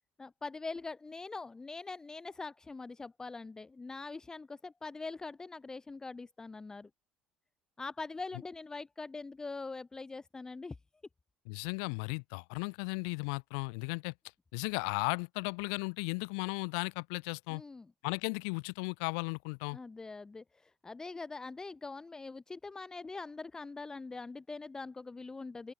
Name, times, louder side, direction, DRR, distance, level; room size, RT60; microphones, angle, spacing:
voice 1, 0.2-6.9 7.8-10.8 17.5-17.9 19.7-25.7, left 3 dB, 20° left, 0.8 m, -43 dB
voice 2, 11.5-14.1 14.5-17.6 18.0-19.8, left 38 dB, 80° left, 0.5 m, -35 dB
open air
supercardioid pair, 85°, 3 cm